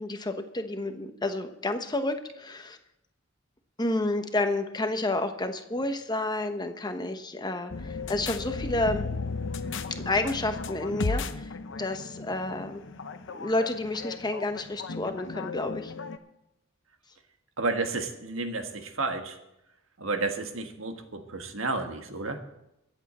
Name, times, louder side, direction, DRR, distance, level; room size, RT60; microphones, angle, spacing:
voice 1, 0.0-2.8 3.8-9.1 9.9-11.5 11.8-12.8 13.3-15.9, left 2 dB, 20° left, 7 dB, 1.0 m, -30 dB
sound 1, 7.7-16.2, left 3 dB, 65° left, 0.8 m, -35 dB
voice 2, 17.6-19.4 20.0-22.4, right 3 dB, 80° right, 5 dB, 1.5 m, -31 dB
23.5 x 8.2 x 4.3 m, 0.87 s
head